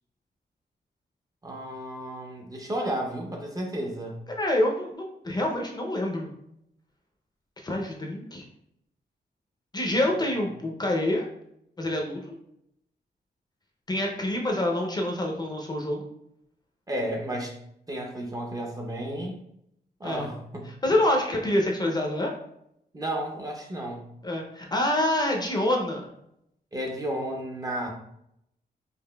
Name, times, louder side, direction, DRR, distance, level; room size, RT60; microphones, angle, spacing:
voice 1, 1.4-4.2 10.1-10.2 16.9-17.6 17.9-19.4 20.0-20.7 22.9-24.1 26.7-27.9, right 1 dB, 20° right, 1 dB, 0.5 m, -32 dB
voice 2, 4.4-6.3 7.6-8.4 9.7-11.3 11.8-12.3 13.9-16.1 20.0-20.3 20.8-22.3 24.2-26.1, left 1 dB, 25° left, 1 dB, 0.5 m, -26 dB
4.8 x 2.5 x 2.2 m, 0.75 s
wide cardioid pair, 145°, 17 cm